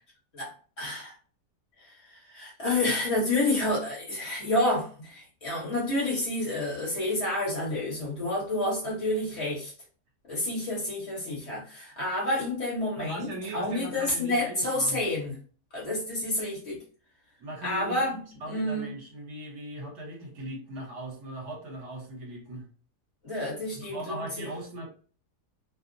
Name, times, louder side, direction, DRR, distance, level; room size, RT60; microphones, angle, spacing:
voice 1, 0.3-1.1 1.8-9.7 10.3-13.3 13.5-15.4 15.7-16.8 17.6-18.2 18.5-18.9 23.2-24.5, left 1 dB, 45° left, -5 dB, 1.2 m, -29 dB
voice 2, 13.0-15.0 17.4-22.7 23.7-24.9, right 1 dB, 65° right, -2 dB, 1.4 m, -39 dB
2.9 x 2.0 x 2.5 m, 0.40 s
omnidirectional pair, 1.8 m